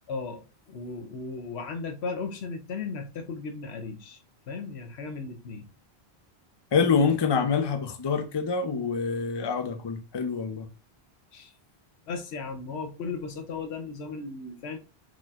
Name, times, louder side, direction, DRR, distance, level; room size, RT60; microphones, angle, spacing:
voice 1, 0.1-4.2 4.5-5.7 11.3-11.5 12.1-14.8, left 4 dB, 85° left, 1.0 m, -36 dB
voice 2, 6.7-10.7, left 5 dB, 35° left, 0.5 m, -26 dB
4.7 x 4.1 x 2.4 m
omnidirectional pair, 1.1 m